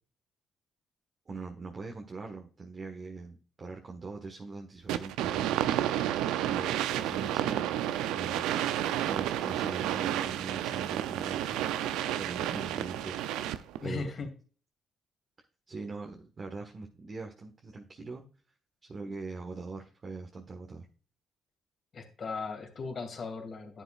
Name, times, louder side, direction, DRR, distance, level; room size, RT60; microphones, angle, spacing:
voice 1, 1.3-5.5 6.5-7.8 8.1-8.5 9.1-11.6 12.1-13.4 13.8-14.1 15.7-18.2 18.8-20.9, right 4 dB, 40° right, 1 dB, 1.5 m, -42 dB
sound 1, 4.9-13.8, right 12 dB, 85° right, 0.6 m, -31 dB
voice 2, 13.8-14.3 21.9-23.8, left 4 dB, 50° left, 5 dB, 2.8 m, -37 dB
10.5 x 9.0 x 2.5 m, 0.38 s
supercardioid pair, 65°, 0 cm